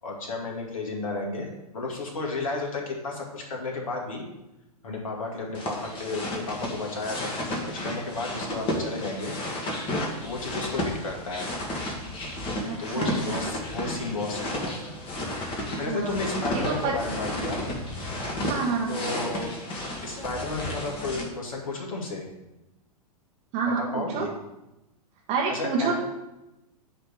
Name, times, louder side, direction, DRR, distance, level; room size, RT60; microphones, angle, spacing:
voice 1, 0.0-4.2 4.8-9.3 10.2-11.5 12.8-14.8 15.5-17.6 18.9-19.5 20.0-22.2 23.8-24.3 25.5-25.9, left 3 dB, 60° left, 0 dB, 2.1 m, -33 dB
sound 1, 5.5-21.2, left 1 dB, 25° left, 1.6 m, -32 dB
voice 2, 12.7-13.4 15.9-16.2 16.5-16.9 18.4-18.9 23.5-24.3 25.3-25.9, right 5 dB, 35° right, -2 dB, 1.2 m, -28 dB
9.0 x 3.4 x 6.4 m, 0.95 s
figure-of-eight pair, 100°, 20 cm